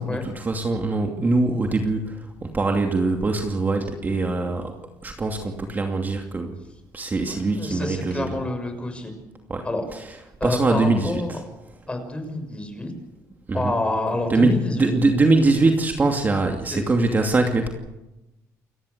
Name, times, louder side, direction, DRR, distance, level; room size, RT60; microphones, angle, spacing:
voice 1, 0.0-4.7 5.0-6.6 6.9-8.3 9.5-9.7 9.9-10.0 10.4-11.4 13.5-13.7 14.3-17.7, right 3 dB, 25° right, 3 dB, 2.6 m, -22 dB
voice 2, 7.3-9.1 9.6-9.8 10.4-11.4 11.9-12.9 13.5-14.9 16.7-16.8, left 2 dB, 15° left, 6 dB, 6.2 m, -28 dB
29.0 x 14.0 x 8.2 m, 0.97 s
cardioid pair, 100°, 7 cm